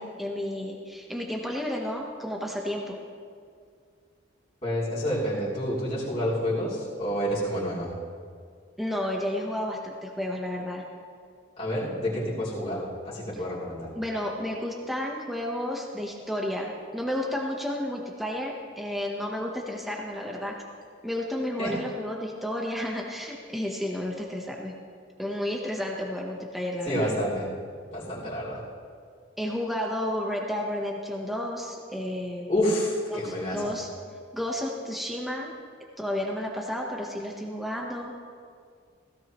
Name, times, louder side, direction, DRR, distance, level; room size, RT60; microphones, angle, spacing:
voice 1, 0.0-3.0 8.8-10.8 13.9-20.6 21.0-24.7 25.2-27.1 29.4-32.5 33.1-33.9 34.3-35.5 36.0-38.1, left 1 dB, ahead, -1 dB, 1.0 m, -32 dB
voice 2, 4.6-7.9 11.6-13.9 21.6-21.7 26.9-27.5 27.9-28.6 32.5-33.7, equal, 30° left, -9 dB, 3.2 m, -29 dB
16.5 x 16.5 x 3.0 m, 2.1 s
head